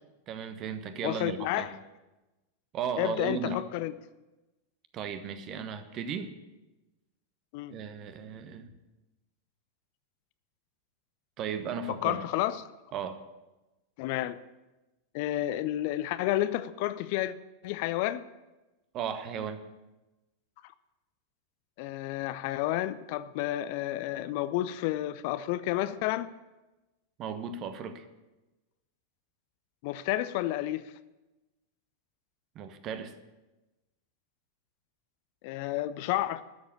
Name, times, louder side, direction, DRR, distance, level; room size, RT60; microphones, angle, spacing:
voice 1, 0.3-1.7 2.7-3.6 4.9-6.3 7.7-8.8 11.4-12.2 12.9-13.2 18.9-19.6 27.2-28.0 32.5-33.1, right 6 dB, 35° right, 1.1 m, -35 dB
voice 2, 1.0-1.7 3.0-3.9 7.5-7.8 12.0-12.6 14.0-14.4 15.1-17.3 17.6-18.2 20.6-20.7 21.8-26.3 29.8-30.9 35.4-36.4, left 14 dB, 45° left, 0.5 m, -31 dB
12.5 x 7.1 x 8.8 m
figure-of-eight pair, 90°, 0 cm